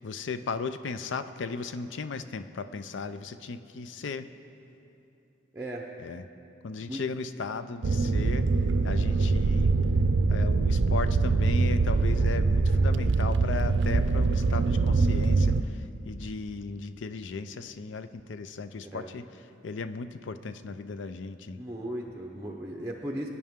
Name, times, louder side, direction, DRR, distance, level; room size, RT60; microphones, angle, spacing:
voice 1, 0.0-4.3 6.0-6.2 6.6-8.5 8.8-9.7 10.3-19.3 19.6-21.6, left 4 dB, 80° left, 11 dB, 0.5 m, -36 dB
voice 2, 5.5-5.9 6.9-7.0 18.9-19.1 21.6-23.3, right 1 dB, 15° right, -1 dB, 0.7 m, -36 dB
sound 1, 7.8-15.6, right 3 dB, 70° right, 0.5 m, -24 dB
20.5 x 9.7 x 3.6 m, 2.8 s
head